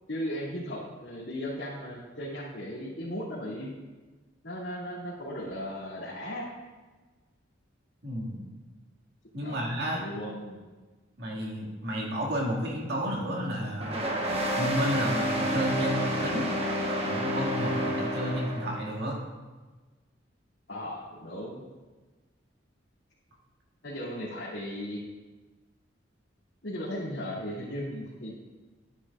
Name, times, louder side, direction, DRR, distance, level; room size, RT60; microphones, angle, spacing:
voice 1, 0.1-3.7 4.4-6.5 9.4-10.6 20.7-21.6 23.8-25.0 26.6-28.3, equal, 75° left, -11 dB, 2.5 m, -36 dB
voice 2, 8.0-8.4 9.3-10.0 11.2-14.0 14.6-16.5 16.9-19.2, equal, 60° right, -2 dB, 2.0 m, -31 dB
sound 1, 13.8-18.9, equal, 30° right, 1.1 m, -29 dB
11.5 x 9.7 x 2.4 m, 1.3 s
head